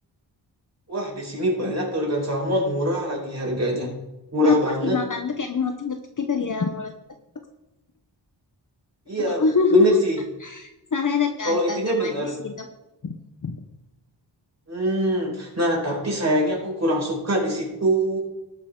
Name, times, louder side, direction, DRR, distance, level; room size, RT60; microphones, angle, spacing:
voice 1, 0.9-3.9 4.3-5.0 9.1-9.4 9.7-10.2 11.4-12.4 14.7-18.2, equal, 35° right, -2 dB, 4.8 m, -23 dB
voice 2, 4.4-6.9 9.2-10.0 10.4-12.7 13.0-13.1 13.4-13.6, left 5 dB, 45° left, 5 dB, 0.8 m, -25 dB
19.0 x 6.7 x 3.8 m, 0.98 s
wide cardioid pair, 115°, 45 cm